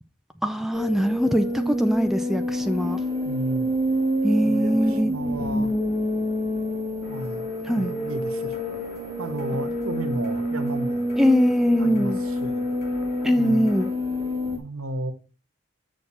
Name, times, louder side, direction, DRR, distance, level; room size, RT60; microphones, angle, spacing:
voice 1, 0.4-3.0 4.2-5.1 7.7-7.9 11.2-12.2 13.2-13.9, equal, ahead, 0.4 m, -22 dB
sound 1, 0.7-14.6, left 1 dB, 20° right, 1.0 m, -27 dB
voice 2, 3.2-3.7 4.4-5.7 7.1-8.6 9.2-11.0 11.7-12.6 13.3-13.7 14.6-15.1, right 1 dB, 80° right, 1.2 m, -33 dB
sound 2, 7.0-13.9, left 2 dB, 45° left, 2.0 m, -46 dB
6.6 x 6.5 x 4.2 m
head